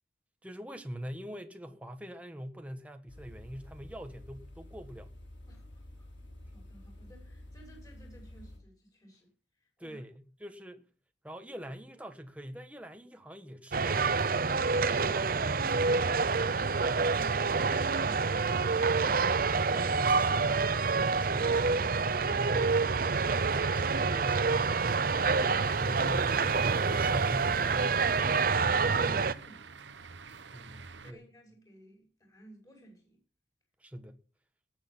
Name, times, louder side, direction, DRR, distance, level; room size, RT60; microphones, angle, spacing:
voice 1, 0.4-5.1 9.8-10.9 11.2-16.0 19.7-21.8 22.3-22.7 23.2-25.3 25.6-28.3 30.5-31.2 33.8-34.2, equal, 5° right, 1.3 m, -43 dB
sound 1, 3.1-8.6, left 1 dB, 80° left, 6.9 m, -50 dB
voice 2, 5.5-6.1 6.5-9.3 9.6-10.0 28.9-30.2 31.0-33.2, right 2 dB, 20° left, 6.3 m, -54 dB
sound 2, 13.7-29.3, right 4 dB, 50° right, 0.6 m, -27 dB
sound 3, 18.4-31.1, right 5 dB, 75° right, 1.0 m, -48 dB
18.5 x 8.1 x 6.0 m
head